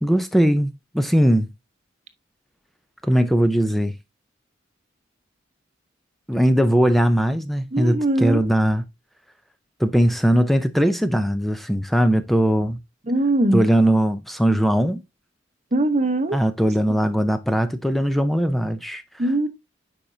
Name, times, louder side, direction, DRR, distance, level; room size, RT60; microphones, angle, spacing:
voice 1, 0.0-1.5 3.0-3.9 6.3-8.8 9.8-12.8 13.5-15.0 16.3-19.0, equal, ahead, 0.4 m, -20 dB
voice 2, 7.7-8.5 13.1-13.6 15.7-16.4 19.2-19.5, right 2 dB, 35° right, 1.0 m, -21 dB
8.8 x 5.1 x 2.7 m
head